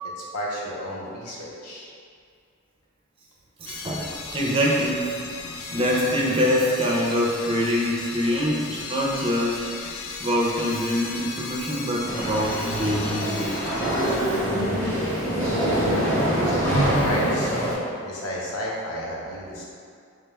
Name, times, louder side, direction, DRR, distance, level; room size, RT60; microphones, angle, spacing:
voice 1, 0.2-1.9 17.0-19.7, equal, 90° left, -4 dB, 0.8 m, -32 dB
voice 2, 3.6-5.2 5.7-9.7 10.2-13.6, equal, 25° right, -3 dB, 0.4 m, -24 dB
sound 1, 3.7-14.2, left 4 dB, 65° left, 0.3 m, -36 dB
sound 2, 12.0-17.7, equal, 10° left, 0.7 m, -24 dB
4.8 x 2.3 x 3.2 m, 2.3 s
head